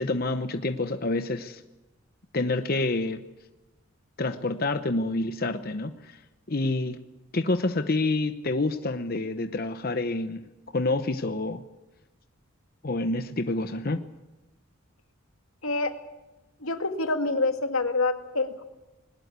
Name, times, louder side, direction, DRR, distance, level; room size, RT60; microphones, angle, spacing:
voice 1, 0.0-1.6 2.3-3.2 4.2-6.2 6.5-7.0 7.3-11.6 12.8-14.0, left 2 dB, 45° left, 9 dB, 0.9 m, -28 dB
voice 2, 15.6-15.9 16.6-18.6, left 3 dB, 90° left, 6 dB, 2.3 m, -26 dB
20.5 x 19.5 x 8.3 m, 1.1 s
head